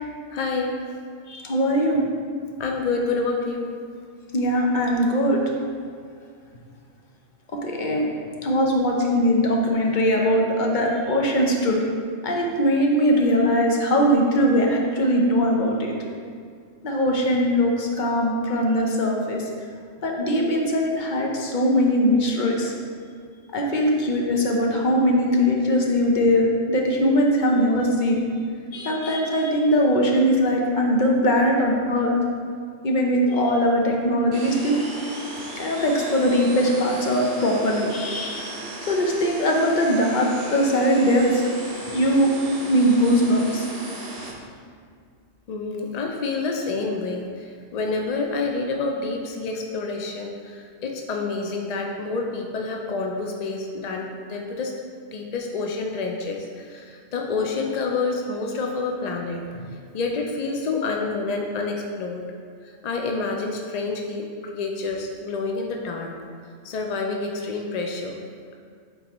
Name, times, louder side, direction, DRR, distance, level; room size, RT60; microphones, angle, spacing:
voice 1, 0.3-0.8 2.6-3.7 45.5-54.7 55.1-62.2 62.8-66.1 66.6-68.1, left 3 dB, 65° left, 1 dB, 0.4 m, -28 dB
voice 2, 1.3-2.0 4.3-5.4 7.6-8.1 8.4-11.9 12.2-15.9 16.8-19.4 20.0-22.7 23.5-28.2 28.7-32.1 32.8-34.8 35.6-38.5 38.9-41.4 41.9-42.3 42.7-43.7, equal, 45° left, 0 dB, 0.8 m, -21 dB
sound 1, 34.3-44.3, right 2 dB, 35° right, 0.9 m, -36 dB
8.2 x 3.8 x 3.0 m, 2.1 s
omnidirectional pair, 1.3 m